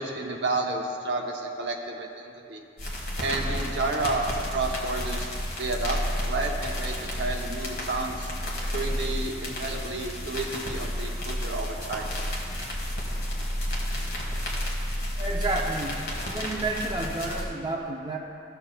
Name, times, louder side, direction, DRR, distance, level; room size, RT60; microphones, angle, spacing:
voice 1, 0.0-2.6 3.2-5.3 5.6-6.0 6.3-8.3 8.7-12.1, right 3 dB, 65° right, 2 dB, 0.8 m, -31 dB
sound 1, 2.8-17.4, equal, 50° left, 1.5 m, -31 dB
voice 2, 15.2-18.2, right 2 dB, 20° right, -1 dB, 0.5 m, -31 dB
14.5 x 6.8 x 2.2 m, 2.6 s
head